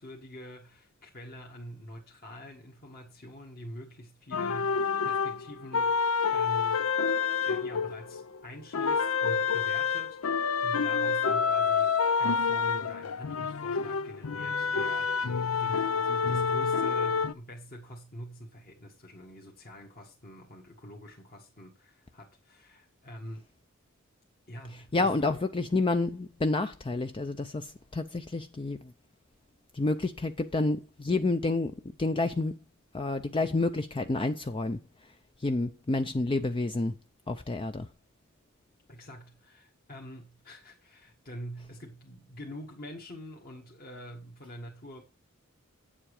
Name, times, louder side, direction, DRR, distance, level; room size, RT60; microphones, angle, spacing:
voice 1, 0.0-6.9 7.4-23.5 24.5-25.4 38.9-45.0, equal, 45° left, 1.7 m, -45 dB
sound 1, 4.3-8.4 8.7-17.3, left 5 dB, 90° left, 0.6 m, -28 dB
voice 2, 24.7-28.9 29.7-32.6 32.9-34.8 35.4-37.0 37.3-37.9, left 2 dB, 25° left, 0.5 m, -29 dB
8.7 x 7.5 x 4.9 m
head